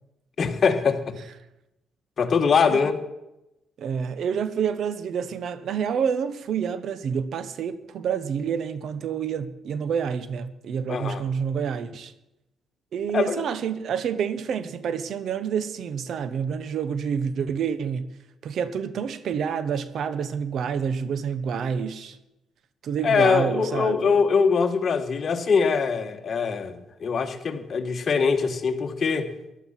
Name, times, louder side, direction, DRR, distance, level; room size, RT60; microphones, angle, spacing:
voice 1, 0.4-1.2 2.2-3.0 10.9-11.2 13.1-13.4 23.0-29.3, left 5 dB, 45° left, 1.5 m, -23 dB
voice 2, 3.8-12.1 12.9-18.1 18.4-22.2 22.8-24.1, right 7 dB, 65° right, 1.0 m, -28 dB
15.0 x 11.5 x 5.8 m
cardioid pair, 90°, 0 cm